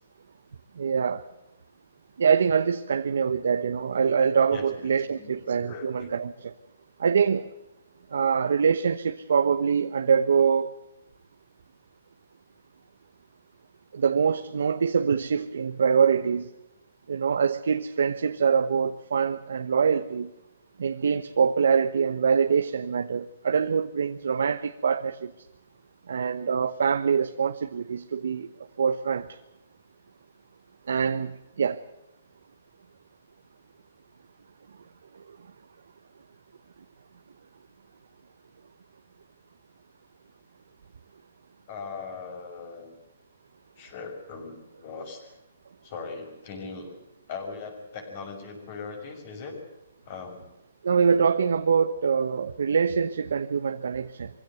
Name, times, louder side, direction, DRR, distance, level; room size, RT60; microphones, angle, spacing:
voice 1, 0.8-1.2 2.2-6.5 7.0-7.5 8.1-10.7 13.9-16.5 17.1-20.3 20.8-25.3 26.1-28.5 28.8-29.3 30.9-31.8 50.8-54.3, right 6 dB, 75° right, 1.1 m, -24 dB
voice 2, 5.1-6.1 7.3-7.4 41.7-42.9 43.8-45.3 45.8-46.9 47.3-49.6 50.0-50.4, left 4 dB, 40° left, 6.4 m, -39 dB
24.0 x 16.0 x 8.0 m
hypercardioid pair, 160°, 0 cm